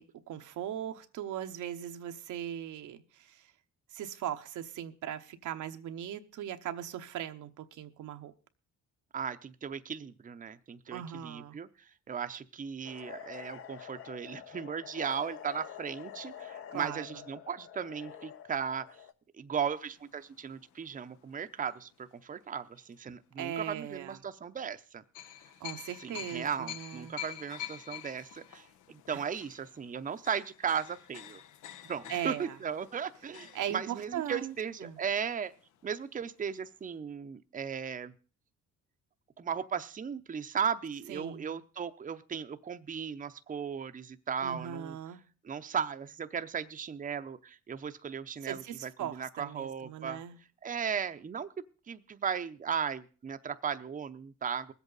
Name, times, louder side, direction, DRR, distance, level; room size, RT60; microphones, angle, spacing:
voice 1, 0.0-3.5 3.9-8.3 10.9-11.6 16.7-17.1 23.4-24.2 25.6-27.1 29.1-29.2 32.1-32.6 33.5-34.5 34.8-35.0 41.1-41.6 44.4-45.2 48.4-50.4, right 10 dB, 80° right, 0.9 m, -39 dB
voice 2, 9.1-11.7 12.1-18.9 19.4-25.0 26.0-31.4 31.8-35.5 35.8-38.1 39.4-45.0 45.4-50.2 50.6-51.5 51.9-54.7, right 7 dB, 25° right, 0.6 m, -36 dB
sound 1, 12.8-19.1, left 9 dB, 45° left, 0.8 m, -47 dB
sound 2, 19.7-22.2 22.8-22.9 25.1-35.9 36.2-36.3 36.6-36.7, left 11 dB, 80° left, 0.8 m, -48 dB
20.5 x 8.2 x 3.9 m
cardioid pair, 90°, 30 cm